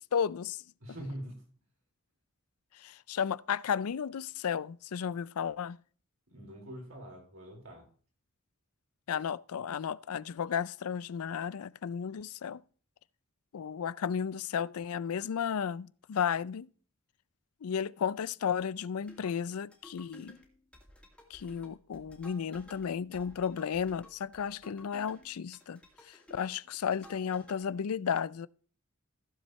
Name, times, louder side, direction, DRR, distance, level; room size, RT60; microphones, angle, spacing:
voice 1, 0.1-0.6 2.8-5.8 9.1-12.6 13.5-16.7 17.6-20.4 21.3-25.8 26.0-28.5, left 7 dB, 85° left, 0.4 m, -33 dB
voice 2, 0.8-1.4 6.3-7.9, equal, 70° right, 4.7 m, -43 dB
sound 1, 19.0-27.7, left 1 dB, 5° left, 2.3 m, -56 dB
15.0 x 7.4 x 3.2 m
head